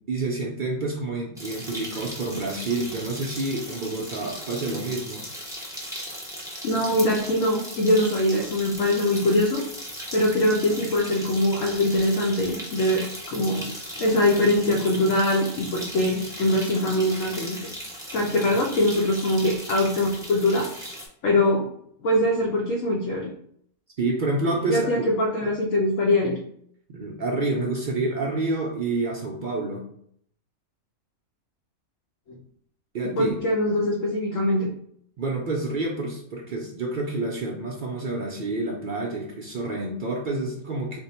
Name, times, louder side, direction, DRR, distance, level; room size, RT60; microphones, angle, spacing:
voice 1, 0.1-5.3 18.8-18.9 24.0-25.0 26.9-29.9 32.9-33.3 35.2-41.0, right 2 dB, 75° right, -1 dB, 0.4 m, -28 dB
sound 1, 1.4-21.1, equal, 5° right, 0.5 m, -38 dB
voice 2, 6.6-9.6 10.1-17.7 18.1-20.7 21.2-21.7 22.0-23.3 24.7-26.4 32.3-32.4 33.0-34.7, left 1 dB, 70° left, -2 dB, 0.9 m, -23 dB
3.4 x 2.1 x 4.1 m, 0.67 s
omnidirectional pair, 1.5 m